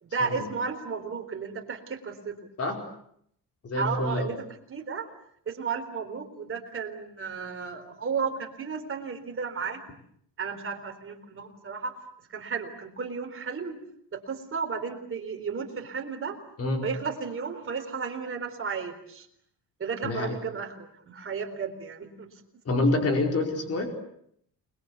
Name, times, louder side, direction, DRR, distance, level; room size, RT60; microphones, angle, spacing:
voice 1, 0.0-2.4 3.7-4.4 4.7-5.1 5.5-9.8 10.4-12.0 12.3-13.8 14.1-16.4 16.8-19.3 19.8-22.3 22.7-22.8, right 5 dB, 30° right, 4 dB, 4.1 m, -33 dB
voice 2, 3.6-4.3 16.6-16.9 20.0-20.3 22.6-23.9, left 2 dB, 35° left, 4 dB, 4.9 m, -26 dB
29.5 x 22.0 x 8.3 m, 0.69 s
cardioid pair, 175°, 41 cm